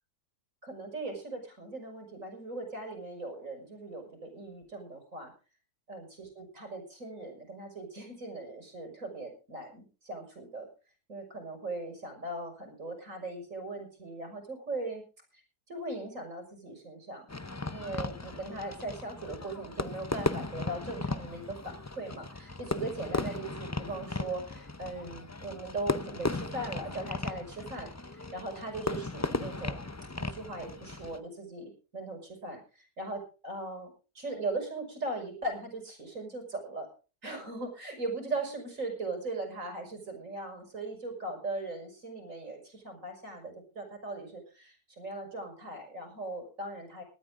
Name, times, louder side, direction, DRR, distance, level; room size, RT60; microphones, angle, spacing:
voice 1, 0.6-5.3 5.9-10.7 11.1-15.0 15.3-15.4 15.7-17.3 17.7-29.9 30.2-36.9 37.2-47.0, right 2 dB, 55° right, 4 dB, 6.7 m, -39 dB
Fireworks, 17.3-31.2, left 3 dB, 20° left, 0.4 m, -36 dB
19.0 x 12.5 x 3.8 m, 0.34 s
omnidirectional pair, 1.6 m